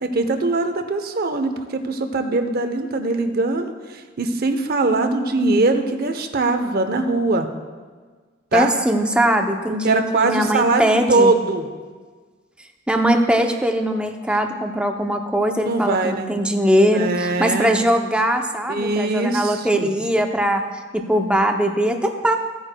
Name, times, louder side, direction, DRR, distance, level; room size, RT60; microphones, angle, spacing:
voice 1, 0.0-7.5 8.5-8.7 9.8-11.7 15.7-16.3 16.9-17.8 18.7-19.9, right 3 dB, 45° right, 7 dB, 0.7 m, -21 dB
voice 2, 8.5-11.3 12.9-20.6 20.9-22.4, equal, 5° right, 4 dB, 0.6 m, -20 dB
15.0 x 9.0 x 2.2 m, 1.5 s
head